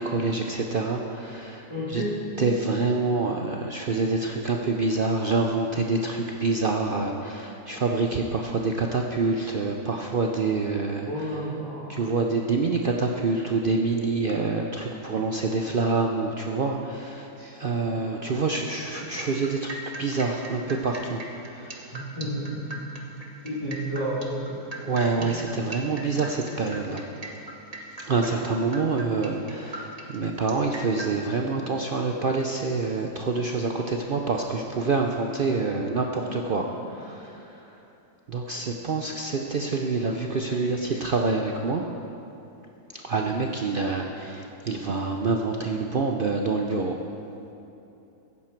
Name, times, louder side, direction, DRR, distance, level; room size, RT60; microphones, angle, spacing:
voice 1, 0.0-1.6 1.9-2.0 2.4-11.1 11.9-21.2 21.5-21.9 24.8-27.1 28.0-37.7 38.3-41.9 42.9-47.0, right 3 dB, 70° right, 2 dB, 0.5 m, -26 dB
voice 2, 1.7-2.2 11.0-12.0 17.4-17.5 21.9-22.9 23.4-24.6 25.2-25.4, equal, 15° left, -11 dB, 3.3 m, -31 dB
sound 1, 18.9-31.1, right 1 dB, 30° right, 0.9 m, -40 dB
15.0 x 10.0 x 4.5 m, 2.9 s
omnidirectional pair, 1.7 m